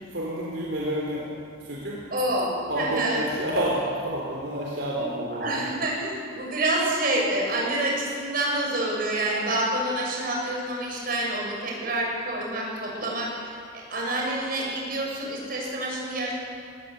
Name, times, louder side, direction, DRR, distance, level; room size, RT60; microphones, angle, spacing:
voice 1, 0.1-1.2 1.6-2.0 2.7-5.6, right 1 dB, 75° right, -3 dB, 3.8 m, -29 dB
voice 2, 2.1-3.2 4.9-16.3, right 1 dB, 50° right, -2 dB, 7.2 m, -28 dB
21.0 x 19.0 x 8.2 m, 2.3 s
head